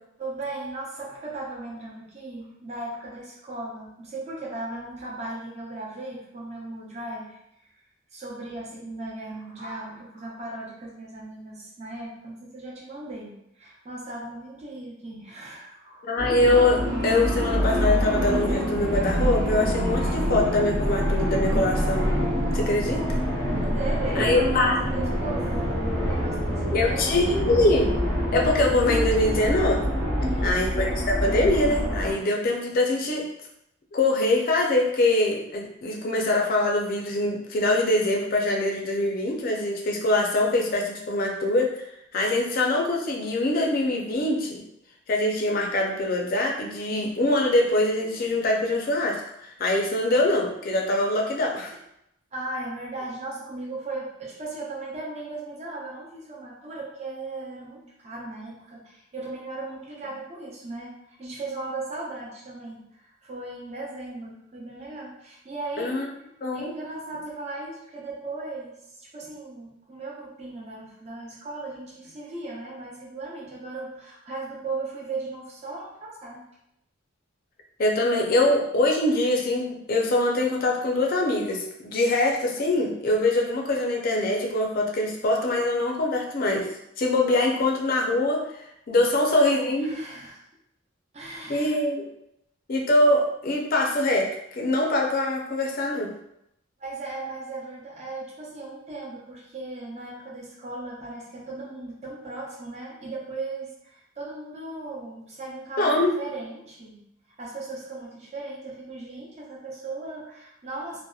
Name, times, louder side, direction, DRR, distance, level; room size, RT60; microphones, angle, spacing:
voice 1, 0.2-7.4 8.1-16.0 23.6-24.7 24.9-27.1 30.2-30.6 52.3-66.1 66.5-68.7 69.0-76.5 89.0-90.4 91.1-91.8 96.8-107.0 107.4-111.0, right 2 dB, 30° right, -4 dB, 0.6 m, -37 dB
voice 2, 16.0-22.1 22.5-23.0 24.2-24.7 26.7-27.9 28.3-29.8 30.4-33.2 33.9-41.8 42.1-44.6 45.1-51.8 65.8-66.1 66.4-66.7 77.8-86.7 87.0-88.4 88.9-89.9 91.5-92.1 92.7-96.1 105.8-106.1, left 2 dB, 45° left, 0 dB, 0.4 m, -23 dB
sound 1, 16.2-32.1, equal, 65° right, 0.9 m, -26 dB
2.7 x 2.1 x 2.3 m, 0.79 s
head